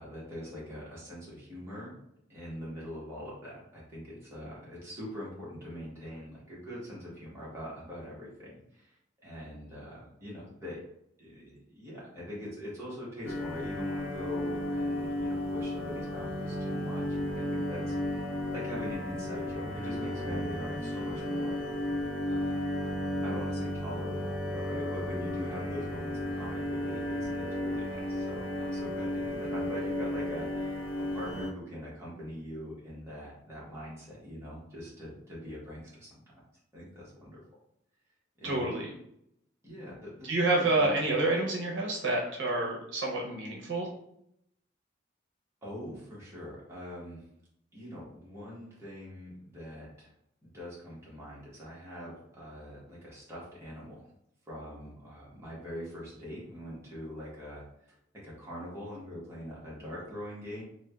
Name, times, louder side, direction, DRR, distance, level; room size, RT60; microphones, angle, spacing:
voice 1, 0.0-2.0 2.3-9.0 9.2-10.8 11.2-18.0 18.5-21.6 22.2-22.7 23.2-36.4 36.7-37.4 38.4-38.7 39.6-41.1 45.6-47.3 47.7-50.1 50.4-54.0 54.5-60.6, equal, 15° right, -7 dB, 0.9 m, -43 dB
sound 1, 13.2-31.5, left 1 dB, 80° left, 0.7 m, -34 dB
Drum, 19.6-21.6, equal, 15° left, 0.8 m, -46 dB
voice 2, 38.4-38.9 40.3-43.9, right 2 dB, 70° right, -2 dB, 0.6 m, -28 dB
3.2 x 2.1 x 2.2 m, 0.76 s
head